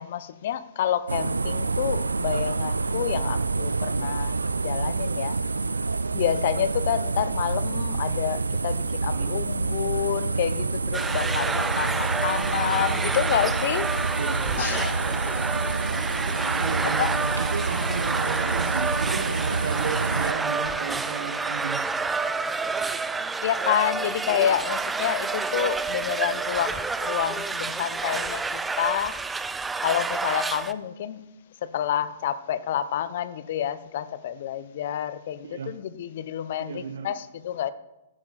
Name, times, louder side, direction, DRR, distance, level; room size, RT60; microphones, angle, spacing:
voice 1, 0.0-4.4 4.6-5.3 6.1-13.9 14.6-15.3 17.0-17.1 23.4-29.2 29.8-31.3 31.6-37.7, left 10 dB, 55° left, 15 dB, 0.9 m, -28 dB
sound 1, 1.1-20.3, right 3 dB, 85° right, 0.4 m, -27 dB
voice 2, 9.0-9.3 14.2-14.4 16.6-21.8 22.7-23.3 35.4-35.8 36.6-37.2, right 6 dB, 65° right, 6 dB, 1.1 m, -34 dB
sound 2, 10.9-30.7, right 4 dB, 10° right, 0.5 m, -29 dB
15.0 x 10.0 x 4.3 m, 0.95 s
figure-of-eight pair, 120°, 0 cm